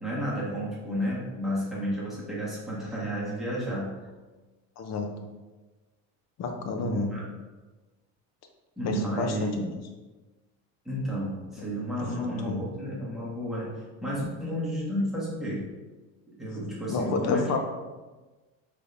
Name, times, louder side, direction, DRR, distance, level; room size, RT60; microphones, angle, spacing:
voice 1, 0.0-4.0 6.7-7.3 8.8-9.7 10.8-13.7 14.0-15.7 16.4-17.6, equal, ahead, -7 dB, 1.3 m, -32 dB
voice 2, 4.8-5.1 6.4-7.1 8.8-9.7 12.4-12.7 16.9-17.6, left 4 dB, 45° left, 4 dB, 0.7 m, -29 dB
4.8 x 3.3 x 2.6 m, 1.2 s
cardioid pair, 125°, 39 cm